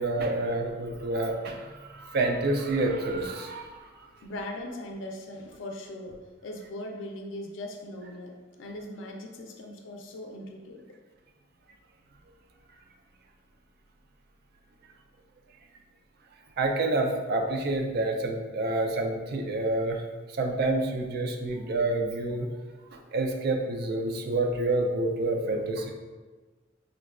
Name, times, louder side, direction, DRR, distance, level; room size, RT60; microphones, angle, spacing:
voice 1, 0.0-3.8 16.6-20.0 20.4-22.5 22.9-25.9, right 2 dB, 55° right, 4 dB, 0.3 m, -28 dB
voice 2, 4.2-6.2 6.4-10.8, left 1 dB, 80° left, 2 dB, 0.4 m, -39 dB
3.7 x 2.2 x 2.3 m, 1.3 s
head